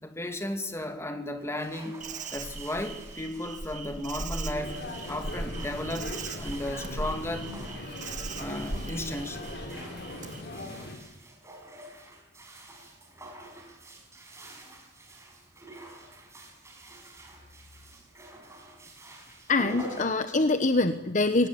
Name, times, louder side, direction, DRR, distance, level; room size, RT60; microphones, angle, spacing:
voice 1, 0.0-2.0 2.3-4.8 5.1-7.5 8.4-9.5, left 1 dB, 15° left, 6 dB, 2.5 m, -34 dB
sound 1, 1.4-21.0, right 1 dB, 15° right, 5.4 m, -48 dB
Insect, 2.0-10.4, right 2 dB, 45° right, 1.9 m, -39 dB
sound 2, 4.5-11.0, left 2 dB, 70° left, 4.8 m, -40 dB
voice 2, 19.5-21.5, left 3 dB, 45° left, 10 dB, 1.0 m, -24 dB
23.0 x 18.5 x 9.9 m, 1.0 s
head